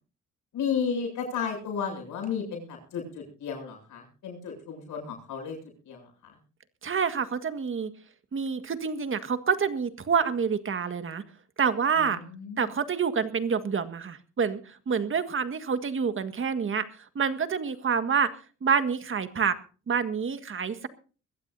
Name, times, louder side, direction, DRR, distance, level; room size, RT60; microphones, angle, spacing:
voice 1, 0.5-5.6 5.9-6.1 12.2-12.7, left 6 dB, 80° left, 2 dB, 7.5 m, -33 dB
voice 2, 6.8-7.9 8.3-11.2 11.6-12.2 12.6-16.8 17.2-18.3 18.6-19.6 19.9-20.9, right 6 dB, 45° right, 10 dB, 1.7 m, -27 dB
22.5 x 15.0 x 2.7 m, 0.37 s
cardioid pair, 90°, 30 cm